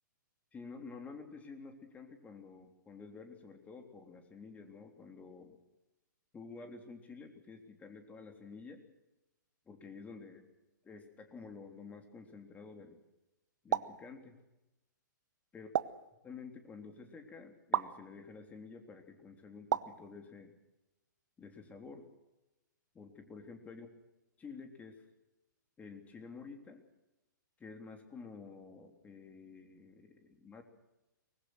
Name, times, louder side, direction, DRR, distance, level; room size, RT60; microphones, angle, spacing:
voice 1, 0.5-5.6 6.3-8.8 9.7-10.5 10.8-13.0 13.6-14.3 15.5-15.9 16.2-20.5 21.4-22.1 22.9-23.9 24.4-25.0 25.8-26.8 27.6-30.6, left 4 dB, 15° left, 5 dB, 3.5 m, -50 dB
sound 1, 13.7-14.0 15.7-16.1 17.7-18.0 19.7-20.0, right 10 dB, 65° right, 1.0 m, -32 dB
24.0 x 21.0 x 6.4 m, 0.97 s
hypercardioid pair, 130°, 11 cm